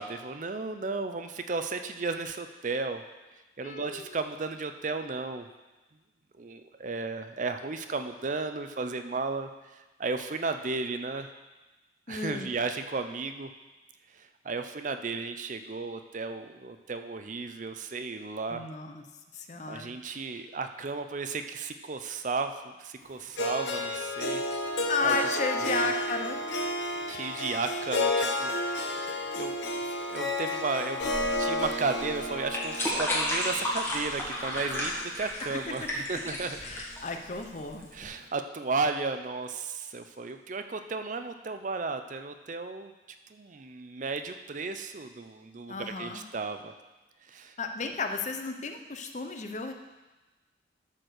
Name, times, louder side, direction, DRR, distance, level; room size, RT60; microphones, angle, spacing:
voice 1, 0.0-3.0 3.6-5.5 6.4-11.3 12.1-13.5 14.1-18.6 19.7-24.4 25.0-25.2 25.6-25.9 27.1-28.9 29.4-29.6 29.8-36.6 37.9-42.9 43.3-46.7 47.3-47.5, right 4 dB, 40° right, 8 dB, 0.5 m, -34 dB
voice 2, 3.6-4.2 12.1-12.5 18.5-19.0 19.3-19.9 24.9-26.4 36.6-37.8 45.7-46.2 47.6-49.7, left 4 dB, 40° left, 5 dB, 0.7 m, -33 dB
Harp, 23.4-35.5, left 1 dB, 70° left, 0.9 m, -32 dB
Water in a glass, 31.0-38.0, left 1 dB, 15° left, 1.8 m, -33 dB
12.0 x 4.4 x 6.5 m, 1.2 s
head